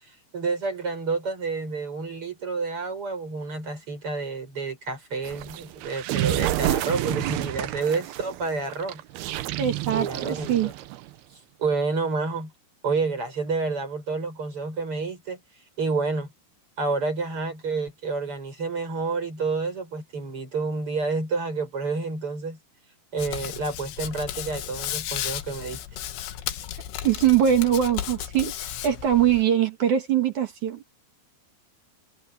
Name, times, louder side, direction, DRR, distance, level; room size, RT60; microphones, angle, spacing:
voice 1, 0.3-9.0 9.9-10.7 11.6-12.5 12.8-15.4 15.8-16.3 16.8-22.6 23.1-25.8, right 4 dB, 30° right, 7.5 m, -29 dB
sound 1, 5.2-11.1, right 15 dB, 75° right, 2.7 m, -29 dB
voice 2, 9.6-10.7 27.0-30.8, right 10 dB, 50° right, 3.0 m, -22 dB
Hands, 23.2-29.4, left 12 dB, 85° left, 3.6 m, -34 dB
omnidirectional pair, 4.9 m